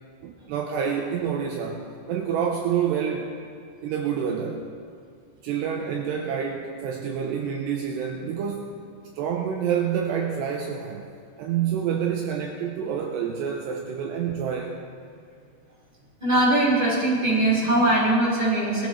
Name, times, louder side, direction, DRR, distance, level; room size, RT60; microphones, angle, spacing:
voice 1, 0.2-1.8 2.1-3.3 3.8-4.7 5.4-8.8 9.2-11.0 11.4-14.8, right 8 dB, 80° right, 2 dB, 2.6 m, -27 dB
voice 2, 16.2-18.9, right 1 dB, 10° right, -7 dB, 4.2 m, -21 dB
21.5 x 14.0 x 3.2 m, 2.3 s
omnidirectional pair, 5.4 m